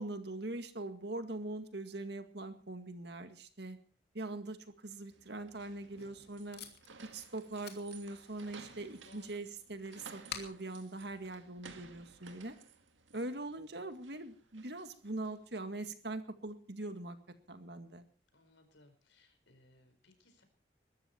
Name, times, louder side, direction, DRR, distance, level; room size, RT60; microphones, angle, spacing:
voice 1, 0.0-3.8 4.1-6.6 7.1-12.5 13.1-17.2 17.5-18.1, right 2 dB, 60° right, 8 dB, 2.0 m, -42 dB
sound 1, 5.1-15.5, right 4 dB, 85° right, 2.0 m, -57 dB
Packing tape duct tape, 5.6-12.1, left 7 dB, 55° left, 2.8 m, -53 dB
voice 2, 9.0-9.4 18.3-20.4, left 2 dB, 80° left, 8 dB, 4.9 m, -64 dB
21.5 x 13.5 x 4.5 m, 0.38 s
head